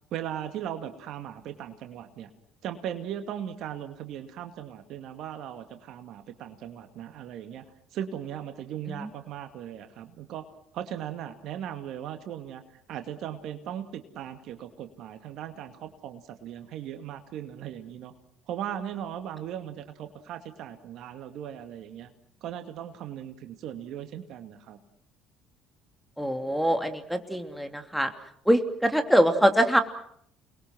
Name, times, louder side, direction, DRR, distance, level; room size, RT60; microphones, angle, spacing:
voice 1, 0.1-2.3 2.6-7.6 7.9-10.5 10.7-12.6 12.9-18.1 18.5-22.1 22.4-24.8, right 10 dB, 65° right, 7 dB, 2.4 m, -38 dB
voice 2, 26.2-28.1 28.5-29.8, equal, ahead, 6 dB, 3.1 m, -23 dB
29.0 x 21.5 x 6.2 m, 0.69 s
hypercardioid pair, 60°, 0 cm